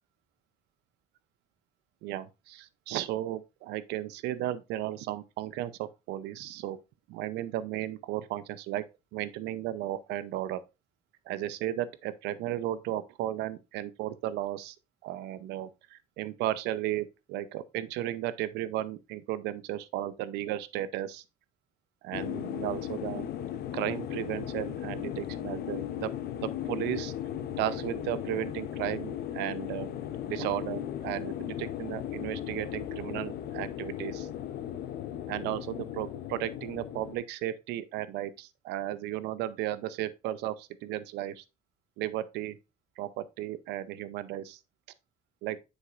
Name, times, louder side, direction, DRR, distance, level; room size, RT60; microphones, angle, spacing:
voice 1, 2.0-6.8 7.1-8.8 9.1-10.6 11.3-14.8 15.0-21.2 22.0-23.3 23.7-26.1 26.4-27.1 27.6-29.9 30.2-34.3 35.3-41.4 42.0-42.6 43.0-44.6 45.4-45.6, right 13 dB, 90° right, 0.6 m, -34 dB
sound 1, 22.1-37.2, left 11 dB, 70° left, 0.8 m, -37 dB
7.5 x 6.4 x 2.4 m
cardioid pair, 110°, 17 cm